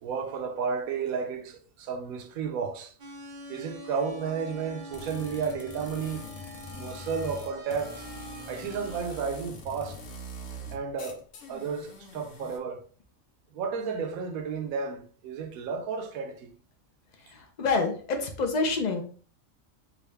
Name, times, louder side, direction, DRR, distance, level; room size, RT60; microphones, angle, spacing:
voice 1, 0.0-2.9 3.5-6.3 6.7-8.1 8.5-10.0 10.7-11.2 11.5-12.8 13.5-16.5, right 6 dB, 85° right, 1.1 m, -32 dB
sound 1, 3.0-9.0, equal, 50° right, 0.6 m, -44 dB
sound 2, 4.9-12.6, left 1 dB, 80° left, 1.1 m, -43 dB
voice 2, 17.3-19.0, left 3 dB, 55° left, 0.5 m, -27 dB
3.8 x 2.3 x 3.3 m
omnidirectional pair, 1.4 m